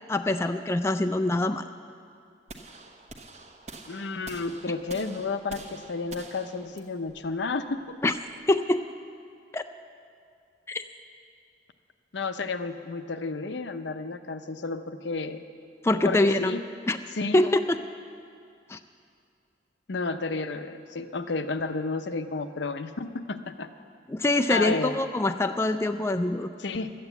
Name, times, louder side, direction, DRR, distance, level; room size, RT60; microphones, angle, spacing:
voice 1, 0.1-1.6 8.0-8.1 8.5-8.8 9.5-9.6 10.7-10.8 15.8-16.6 16.9-17.0 17.3-17.8 18.7-18.8 24.1-26.5, left 2 dB, 15° left, 8 dB, 0.3 m, -24 dB
sound 1, 2.5-8.6, right 2 dB, 40° right, 1.1 m, -46 dB
voice 2, 3.9-7.8 12.1-15.4 16.1-16.6 17.2-17.4 19.9-23.7 24.5-25.0 26.6-26.9, left 3 dB, 75° left, 9 dB, 0.6 m, -31 dB
13.0 x 8.9 x 8.1 m, 2.4 s
head